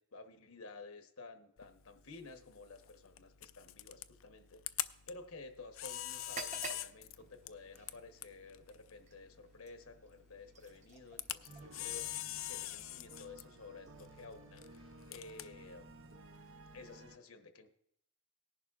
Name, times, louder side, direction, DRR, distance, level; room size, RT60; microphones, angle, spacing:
voice 1, 0.0-16.2 16.7-17.7, left 3 dB, 80° left, 6 dB, 1.1 m, -53 dB
Camera, 1.6-17.0, left 14 dB, 65° left, 0.4 m, -46 dB
sound 1, 6.2-14.0, right 4 dB, 35° right, 0.9 m, -52 dB
sound 2, 11.5-17.2, right 2 dB, 65° right, 0.7 m, -56 dB
18.5 x 11.0 x 2.4 m, 0.73 s
head